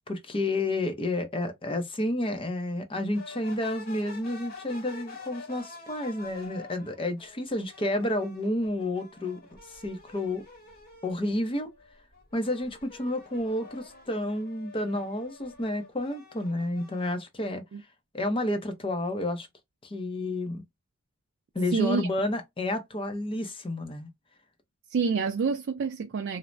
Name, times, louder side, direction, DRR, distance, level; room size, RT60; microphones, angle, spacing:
voice 1, 0.1-9.4 9.7-10.4 11.0-11.7 12.3-17.6 18.1-19.5 19.8-20.6 21.5-24.1, left 1 dB, 25° left, 0.6 m, -30 dB
sound 1, 3.1-11.2 11.6-17.1, left 3 dB, 45° left, 1.0 m, -48 dB
voice 2, 21.7-22.1 24.9-26.4, right 5 dB, 50° right, 0.3 m, -27 dB
3.2 x 2.0 x 2.5 m
head